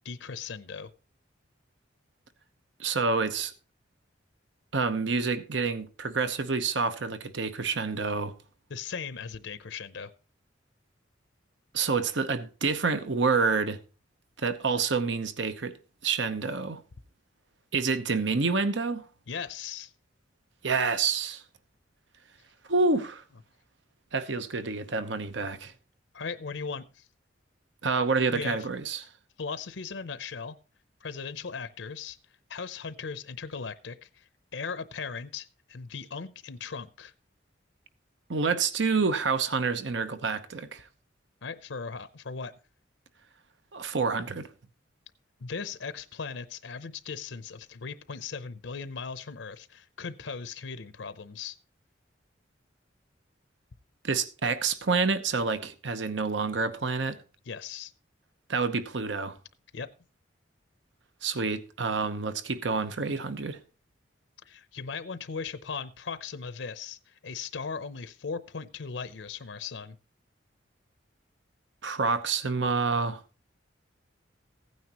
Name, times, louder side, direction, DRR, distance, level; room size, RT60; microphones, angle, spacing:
voice 1, 0.0-0.9 8.7-10.1 19.3-19.9 26.1-27.1 28.3-28.7 29.4-30.6 31.0-32.2 32.5-37.1 41.4-42.5 45.4-51.6 57.4-57.9 59.7-59.9 64.4-70.0, left 5 dB, 75° left, 0.7 m, -38 dB
voice 2, 2.8-3.5 4.7-8.3 11.7-13.8 14.4-15.8 16.0-16.8 17.7-19.1 20.6-21.4 22.7-23.2 24.1-25.7 27.8-29.0 38.3-40.8 43.7-44.5 54.0-57.2 58.5-59.4 61.2-63.6 71.8-73.2, right 4 dB, 70° right, 0.9 m, -28 dB
15.5 x 9.4 x 3.0 m
head